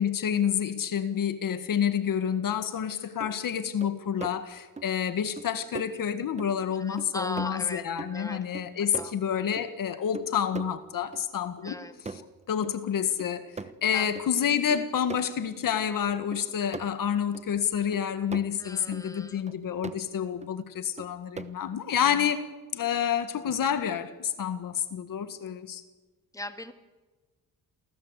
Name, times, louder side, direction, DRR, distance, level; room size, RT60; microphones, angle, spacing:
voice 1, 0.0-11.8 12.1-12.2 12.5-13.5 13.8-22.5 22.7-25.8, left 8 dB, 65° left, 1.8 m, -28 dB
sound 1, 2.8-2.9 3.2-3.4 3.8-4.4 4.8-4.9 5.4-5.5 5.7-5.9 6.4-6.7 7.0-7.7 8.0-9.7 10.1-11.3 11.7-12.4 12.6-12.7 13.2-14.3 14.7-15.2 15.7-15.8 16.3-17.5 17.9-18.6 18.9-19.0 19.5-20.0 20.4-20.5 21.0-21.7, right 4 dB, 20° right, 1.0 m, -41 dB
voice 2, 6.8-9.1 11.6-11.9 13.9-14.1 14.5-14.6 18.6-19.4 26.3-26.7, left 1 dB, 10° left, 2.0 m, -39 dB
28.0 x 19.0 x 8.3 m
cardioid pair, 140°, 35 cm